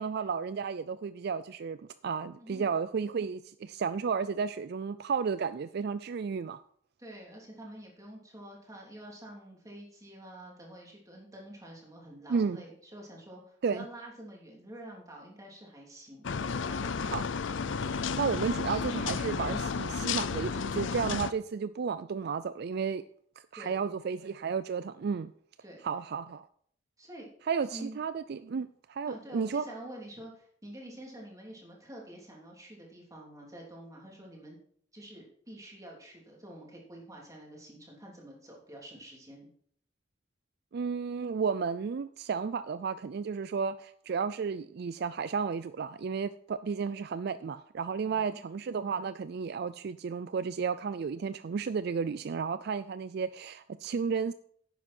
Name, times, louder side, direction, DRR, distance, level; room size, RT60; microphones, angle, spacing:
voice 1, 0.0-1.8 2.0-6.6 12.3-12.6 13.6-13.8 17.0-17.2 17.9-23.0 23.5-25.3 25.8-26.5 27.5-29.6 40.7-54.3, right 5 dB, 55° right, 0.4 m, -33 dB
voice 2, 7.0-17.2 23.5-23.9 25.6-25.8 27.0-27.3 27.7-28.0 29.0-34.6 34.9-39.5 48.0-48.4, right 1 dB, 20° right, 3.2 m, -47 dB
sound 1, 16.2-21.3, left 5 dB, 75° left, 0.5 m, -32 dB
11.0 x 9.2 x 4.4 m
head